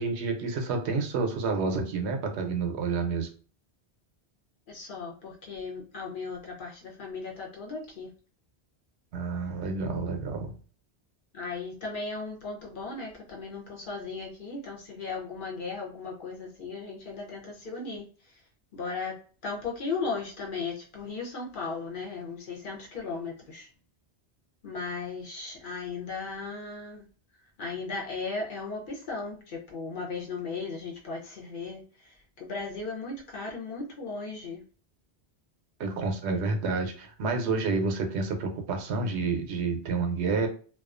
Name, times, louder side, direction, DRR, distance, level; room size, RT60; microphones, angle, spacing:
voice 1, 0.0-3.3 9.1-10.6 35.8-40.5, right 4 dB, 85° right, 5 dB, 0.9 m, -29 dB
voice 2, 4.7-8.1 11.3-18.4 18.7-19.1 19.4-23.7 24.6-27.0 27.6-34.6, left 4 dB, 55° left, -2 dB, 0.8 m, -36 dB
2.3 x 2.3 x 2.4 m, 0.40 s
omnidirectional pair, 1.1 m